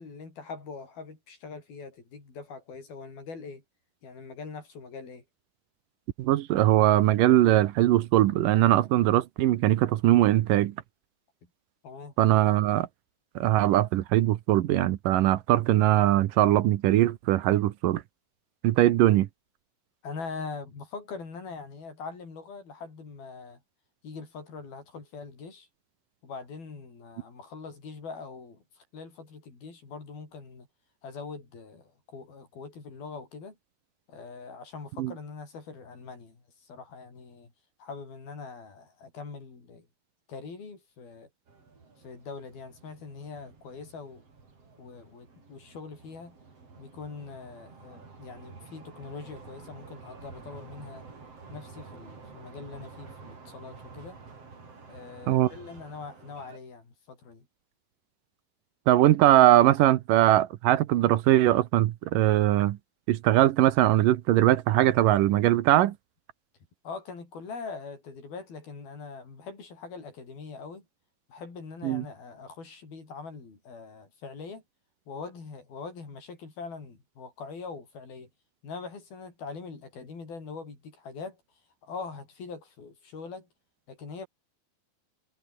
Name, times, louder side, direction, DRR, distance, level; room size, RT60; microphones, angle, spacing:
voice 1, 0.0-3.6 4.0-5.2 11.8-12.1 20.0-23.6 24.0-25.7 26.2-30.7 31.0-33.5 34.1-37.5 37.8-39.9 40.3-41.3 42.0-44.2 44.8-46.4 46.8-51.1 51.5-54.2 54.9-57.5 66.8-70.8 71.3-74.6 75.1-78.3 78.6-81.4 81.8-83.5 83.9-84.3, left 4 dB, 80° left, 8.5 m, -42 dB
voice 2, 6.2-10.7 12.2-12.9 13.4-18.0 18.6-19.3 35.0-35.1 55.3-55.5 58.9-62.8 63.1-65.9 71.8-72.0, right 14 dB, 70° right, 2.5 m, -21 dB
sound 1, 41.5-56.6, right 4 dB, 40° right, 5.5 m, -50 dB
omnidirectional pair, 4.2 m